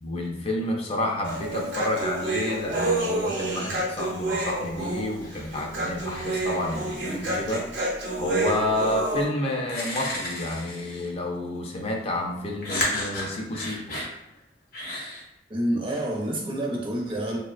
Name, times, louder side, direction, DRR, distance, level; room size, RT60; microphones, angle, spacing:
voice 1, 0.0-7.6 8.2-14.0, left 1 dB, 35° left, 0 dB, 0.4 m, -29 dB
Human voice, 1.2-9.3, right 2 dB, 80° right, 0.7 m, -29 dB
sound 1, 5.2-5.6 6.0-7.4 9.0-9.1 9.6-11.2 12.6-14.1 14.7-15.2, left 1 dB, 60° left, 0.7 m, -33 dB
voice 2, 15.5-17.4, right 1 dB, 30° right, -1 dB, 0.5 m, -28 dB
2.6 x 2.0 x 2.4 m, 0.92 s
head